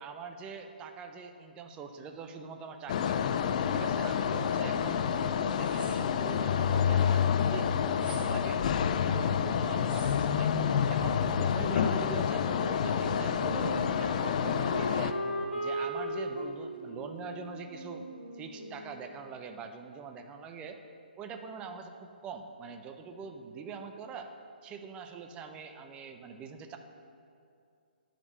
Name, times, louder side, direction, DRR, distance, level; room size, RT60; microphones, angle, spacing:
voice 1, 0.0-3.2 3.7-8.6 9.0-10.5 10.9-15.2 15.5-18.1 18.3-20.8 21.2-24.3 24.6-26.8, right 5 dB, 20° right, 6 dB, 0.6 m, -43 dB
sound 1, 2.9-15.1, left 7 dB, 45° left, 0.5 m, -28 dB
sound 2, 5.5-6.4 7.9-8.3 9.8-10.2, right 3 dB, 65° right, 2.6 m, -49 dB
Wind instrument woodwind instrument, 12.5-19.1, right 1 dB, 85° left, 1.6 m, -37 dB
10.5 x 5.2 x 6.8 m, 2.5 s
figure-of-eight pair, 135°, 5 cm